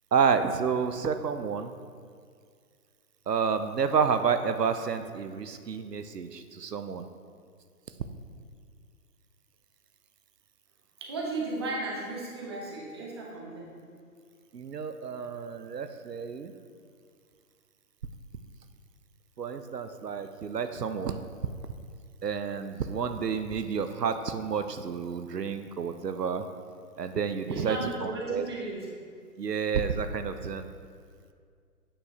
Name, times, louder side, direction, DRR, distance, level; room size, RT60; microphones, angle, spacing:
voice 1, 0.1-1.7 3.3-7.0 14.5-16.5 19.4-21.2 22.2-26.5 27.0-28.5 29.4-30.7, right 6 dB, 85° right, 9 dB, 0.6 m, -30 dB
voice 2, 11.0-13.7 27.5-28.9, right 2 dB, 15° right, -3 dB, 0.6 m, -35 dB
8.5 x 6.8 x 2.7 m, 2.1 s
figure-of-eight pair, 130°, 47 cm